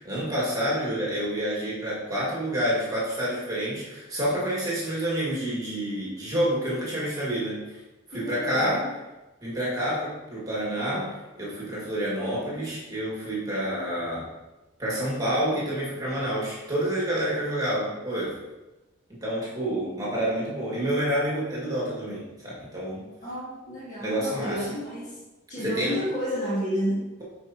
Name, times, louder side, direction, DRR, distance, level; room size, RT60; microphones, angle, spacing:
voice 1, 0.0-7.8 8.1-8.8 9.4-11.1 11.4-14.3 14.8-18.4 19.1-23.0 24.0-24.7 25.6-26.0, right 1 dB, 20° right, -6 dB, 1.9 m, -28 dB
voice 2, 8.1-8.9 23.2-25.2 25.5-27.1, equal, 35° left, -8 dB, 2.3 m, -31 dB
7.9 x 5.0 x 2.8 m, 1.1 s
head